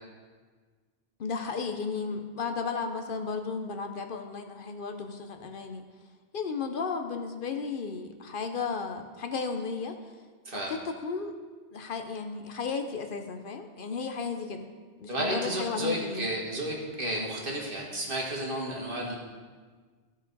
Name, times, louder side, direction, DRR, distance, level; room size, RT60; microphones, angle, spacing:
voice 1, 1.2-5.8 6.3-10.0 10.5-11.4 11.7-14.7 15.0-16.3, left 5 dB, 60° left, 6 dB, 0.8 m, -34 dB
voice 2, 15.1-19.2, right 1 dB, 60° right, -2 dB, 1.8 m, -32 dB
14.5 x 5.1 x 3.9 m, 1.5 s
omnidirectional pair, 1.1 m